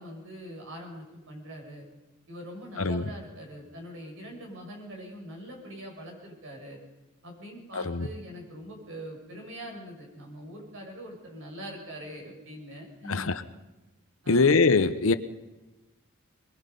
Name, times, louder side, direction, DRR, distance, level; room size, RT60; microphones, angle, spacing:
voice 1, 0.0-1.9 2.3-6.8 7.2-13.3 14.2-14.5, equal, 60° right, 1 dB, 5.7 m, -43 dB
voice 2, 2.8-3.1 7.7-8.1 13.1-13.4 14.3-15.1, left 4 dB, 65° left, 13 dB, 0.9 m, -23 dB
22.0 x 22.0 x 5.4 m, 1.1 s
head